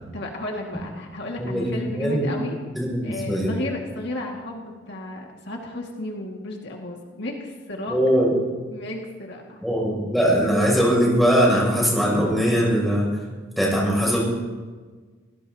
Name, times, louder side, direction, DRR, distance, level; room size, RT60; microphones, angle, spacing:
voice 1, 0.1-2.6 3.0-8.0 8.7-9.6, left 1 dB, 60° left, 0 dB, 2.0 m, -33 dB
voice 2, 1.4-2.3 2.7-3.5 7.9-8.3 9.6-13.1 13.6-14.2, equal, ahead, -5 dB, 6.6 m, -21 dB
27.0 x 17.5 x 2.9 m, 1.4 s
head